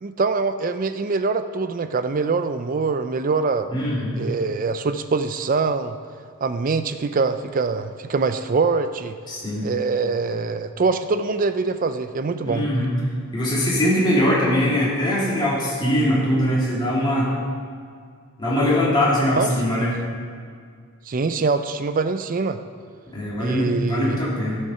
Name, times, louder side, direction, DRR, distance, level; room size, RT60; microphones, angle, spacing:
voice 1, 0.0-3.7 4.1-6.0 6.4-9.2 9.6-12.7 19.3-19.9 21.1-22.6 23.4-24.2, right 4 dB, 40° right, 10 dB, 0.4 m, -24 dB
voice 2, 3.7-4.2 9.3-9.7 12.4-12.9 13.3-17.3 18.4-19.9 23.1-24.6, left 1 dB, 20° left, -6 dB, 2.5 m, -21 dB
12.0 x 6.6 x 5.6 m, 2.1 s
head